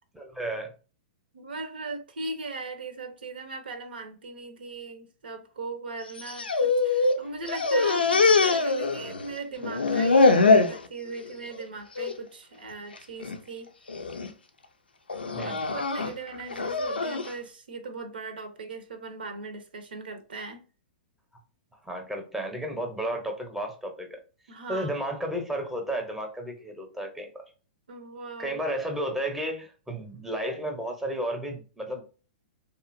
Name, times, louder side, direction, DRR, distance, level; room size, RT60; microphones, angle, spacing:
voice 1, 0.1-0.7 15.3-15.7 21.8-24.2 24.7-27.4 28.4-32.1, right 1 dB, 5° right, 0.6 m, -33 dB
voice 2, 1.3-13.7 15.4-20.7 24.5-24.9 27.9-28.6, right 3 dB, 75° right, 0.6 m, -39 dB
sound 1, 6.1-7.2 7.5-9.3 9.6-10.8 11.3-11.6 12.0-12.1 13.0-13.4 13.9-14.3 15.1-17.3, left 3 dB, 90° left, 0.4 m, -23 dB
2.7 x 2.4 x 2.5 m
hypercardioid pair, 115°, 5 cm